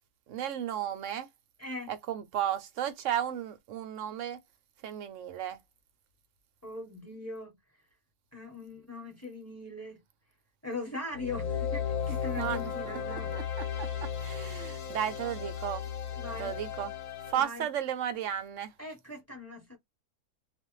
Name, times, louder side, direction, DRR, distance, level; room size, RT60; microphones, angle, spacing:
voice 1, 0.3-1.3 1.9-4.4 4.8-5.6 12.4-12.6 13.1-13.4 13.8-13.9 14.2-15.8 16.4-16.9 17.3-18.7, right 10 dB, 70° right, 0.8 m, -34 dB
voice 2, 1.6-1.9 6.6-7.6 8.3-10.0 10.6-13.4 13.7-14.0 16.1-16.6 17.3-17.7 18.8-19.8, left 2 dB, 10° left, 0.9 m, -41 dB
sound 1, 11.1-17.3, left 7 dB, 65° left, 0.9 m, -35 dB
2.5 x 2.1 x 3.0 m
omnidirectional pair, 1.7 m